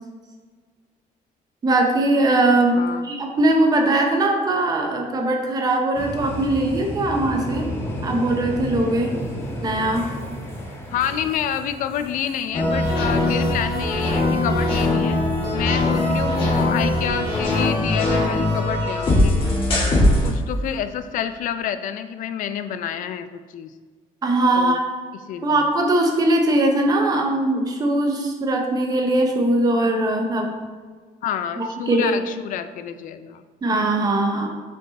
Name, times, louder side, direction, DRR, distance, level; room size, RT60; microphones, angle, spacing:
voice 1, 1.6-7.7 8.0-9.2 9.6-10.0 24.2-24.8 25.4-30.6 31.6-32.1 33.6-34.5, right 2 dB, 25° right, 2 dB, 0.8 m, -20 dB
sound 1, 5.9-17.8 18.1-18.6 20.5-20.8, equal, 15° left, 1.0 m, -35 dB
voice 2, 10.9-15.2 15.5-19.4 20.2-23.7 24.6-24.8 25.3-25.6 31.2-33.4, left 9 dB, 65° left, 11 dB, 0.4 m, -28 dB
sound 2, 12.5-20.3, left 1 dB, 35° left, 1.6 m, -20 dB
6.1 x 4.7 x 4.1 m, 1.5 s
cardioid pair, 180°, 15 cm